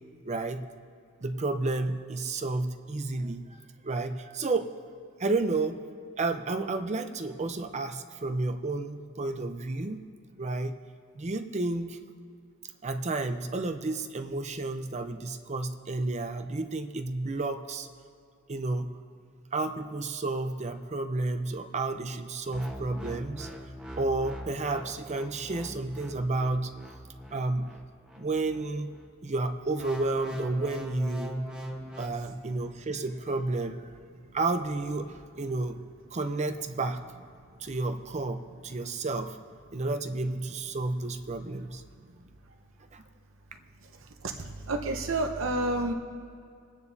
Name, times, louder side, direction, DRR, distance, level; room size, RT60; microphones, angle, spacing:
voice 1, 0.2-0.7 1.2-3.6 3.8-4.7 5.2-5.8 6.2-10.1 10.4-10.7 11.2-12.0 12.8-17.9 18.5-18.9 19.5-23.5 24.0-26.7 27.3-27.7 28.2-28.9 29.2-31.4 32.0-33.9 34.3-35.8 36.1-37.0 37.6-39.4 39.7-41.8 42.9-43.0, right 2 dB, 35° right, 7 dB, 0.6 m, -31 dB
sound 1, 22.5-29.1 29.8-32.1, equal, 5° right, 1.1 m, -41 dB
voice 2, 44.2-45.9, right 2 dB, 85° right, 5 dB, 0.8 m, -29 dB
26.0 x 9.6 x 2.7 m, 2.3 s
head